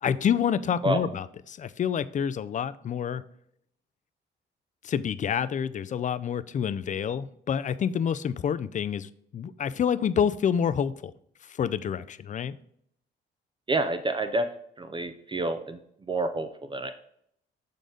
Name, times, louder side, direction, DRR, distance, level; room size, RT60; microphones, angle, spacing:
voice 1, 0.0-3.2 4.8-11.1 11.4-12.5, left 8 dB, 40° left, 14 dB, 0.4 m, -28 dB
voice 2, 13.7-14.5 14.8-15.8 16.1-16.9, right 2 dB, 25° right, 8 dB, 0.5 m, -28 dB
6.7 x 3.9 x 3.8 m, 0.69 s
cardioid pair, 90°, 20 cm